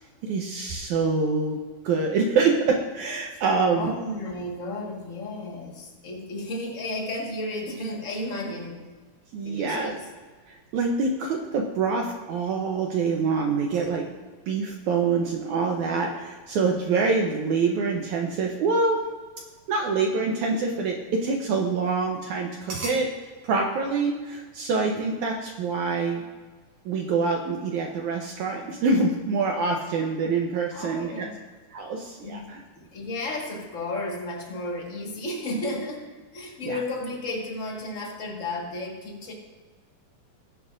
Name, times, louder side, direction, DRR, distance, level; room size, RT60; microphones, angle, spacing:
voice 1, 0.2-1.6 1.8-3.9 9.3-9.9 10.5-14.1 14.5-19.0 19.7-23.1 23.4-26.2 26.9-31.3 31.7-32.6 36.6-36.8, right 4 dB, 75° right, 1 dB, 1.8 m, -25 dB
voice 2, 3.7-8.8 9.4-10.0 30.7-31.4 32.2-39.3, left 1 dB, 55° left, -2 dB, 0.8 m, -33 dB
21.0 x 8.5 x 2.5 m, 1.4 s
omnidirectional pair, 4.2 m